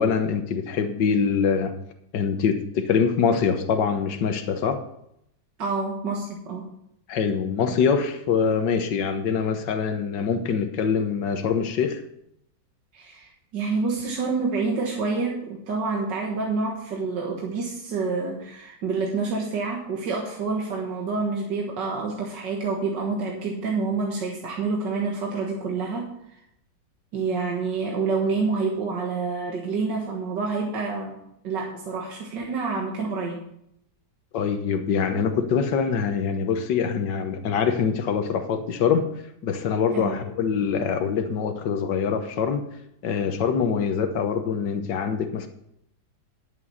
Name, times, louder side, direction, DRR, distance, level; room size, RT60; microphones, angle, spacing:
voice 1, 0.0-1.7 2.1-4.8 7.1-12.0 34.3-39.1 39.4-42.7 43.0-45.5, left 6 dB, 80° left, 7 dB, 1.7 m, -24 dB
voice 2, 5.6-6.7 12.9-26.1 27.1-31.2 31.4-33.5 39.9-40.2, right 4 dB, 80° right, -1 dB, 2.1 m, -28 dB
11.0 x 7.9 x 5.6 m, 0.75 s
omnidirectional pair, 1.9 m